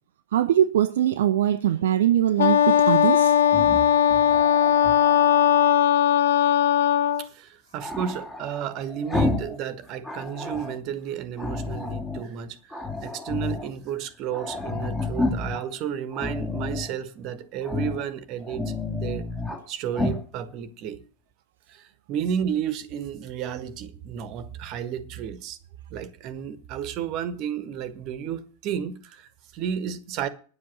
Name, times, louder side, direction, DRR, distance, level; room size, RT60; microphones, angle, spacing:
voice 1, 0.3-3.4, right 11 dB, 60° right, 0.6 m, -22 dB
Wind instrument woodwind instrument, 2.4-7.3, left 9 dB, 60° left, 0.7 m, -19 dB
Growling, 3.4-5.4 7.8-9.6 9.9-10.8 11.4-12.3 12.7-13.7 14.0-14.1 14.3-15.6 16.1-16.9 17.6-18.0 18.4-19.6 19.9-20.2, left 2 dB, 10° left, 2.2 m, -30 dB
voice 2, 7.2-19.3 19.7-21.0 21.7-25.6 25.9-30.3, right 8 dB, 40° right, 1.3 m, -32 dB
10.5 x 7.7 x 7.5 m
figure-of-eight pair, 90°, 0 cm